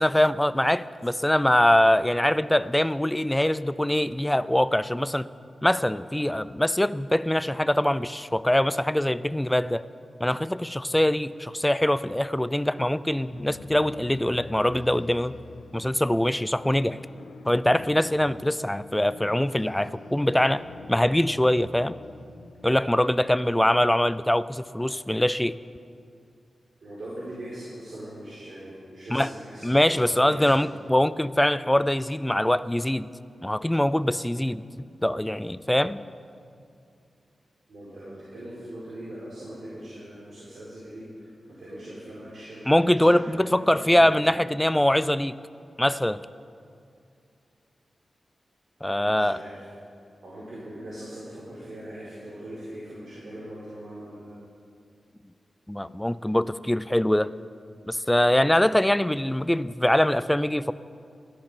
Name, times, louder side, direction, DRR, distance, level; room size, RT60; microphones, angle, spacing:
voice 1, 0.0-5.2 5.6-9.8 10.2-15.3 15.7-17.0 17.5-20.6 20.9-22.0 22.6-25.6 29.1-29.3 29.6-33.1 33.4-34.6 35.0-36.0 42.7-45.4 45.8-46.2 48.8-49.4 55.7-57.3 57.9-60.7, left 1 dB, 10° left, 16 dB, 0.5 m, -23 dB
sound 1, 13.1-25.7, left 5 dB, 90° left, 0.6 m, -47 dB
voice 2, 26.8-30.8 37.7-44.2 49.0-49.6 50.2-54.3, right 1 dB, 70° right, -9 dB, 4.8 m, -41 dB
17.0 x 13.5 x 5.2 m, 2.4 s
cardioid pair, 50°, 0 cm